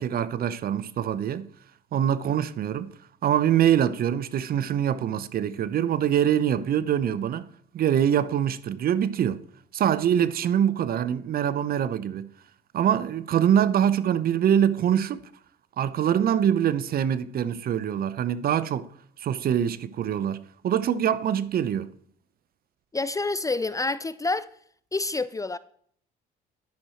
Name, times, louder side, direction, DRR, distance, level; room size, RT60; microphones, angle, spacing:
voice 1, 0.0-1.5 1.9-2.9 3.2-7.5 7.7-9.4 9.7-12.3 12.7-15.2 15.8-18.9 19.2-21.9, right 9 dB, 50° right, 0.6 m, -24 dB
voice 2, 22.9-24.5 24.9-25.6, left 3 dB, 15° left, 0.4 m, -28 dB
10.5 x 6.2 x 4.3 m
supercardioid pair, 75°, 20 cm